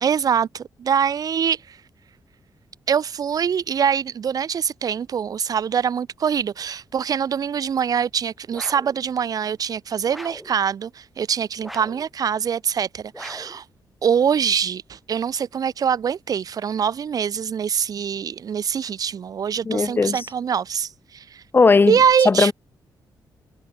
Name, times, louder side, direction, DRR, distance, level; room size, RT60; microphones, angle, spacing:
voice 1, 0.0-1.8 2.9-13.6 14.0-21.4 21.9-22.5, right 7 dB, 55° right, 2.3 m, -24 dB
sound 1, 8.5-9.0 10.1-10.6 11.6-12.1 13.1-13.6, equal, ahead, 5.8 m, -39 dB
voice 2, 19.7-20.2 21.5-22.0 22.3-22.5, left 4 dB, 25° left, 1.7 m, -17 dB
wide cardioid pair, 150°, 8 cm